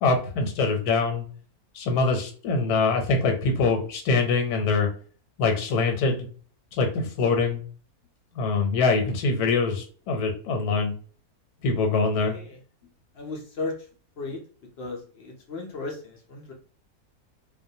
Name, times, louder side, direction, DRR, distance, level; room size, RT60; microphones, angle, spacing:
voice 1, 0.0-1.2 1.7-4.9 5.4-6.3 6.8-7.6 8.3-10.9 11.6-12.3, left 4 dB, 80° left, 3 dB, 1.2 m, -24 dB
voice 2, 12.2-12.6 13.1-13.7 14.2-14.4 14.8-16.5, left 3 dB, 65° left, 1 dB, 0.6 m, -35 dB
2.4 x 2.2 x 2.6 m, 0.42 s
omnidirectional pair, 1.6 m